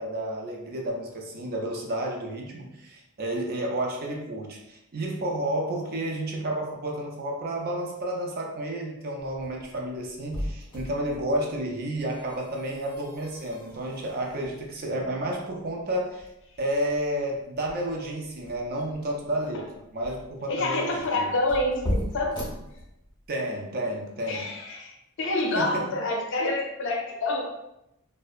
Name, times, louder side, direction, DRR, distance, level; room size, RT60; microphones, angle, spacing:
voice 1, 0.0-16.3 16.6-21.3 23.3-24.5 25.5-26.0, right 1 dB, 45° right, 0 dB, 0.4 m, -31 dB
sound 1, 9.2-23.3, equal, 20° left, 0.6 m, -39 dB
voice 2, 20.5-22.4 24.3-24.9 25.2-27.5, left 2 dB, 55° left, 1 dB, 0.5 m, -27 dB
2.6 x 2.1 x 2.3 m, 0.87 s
head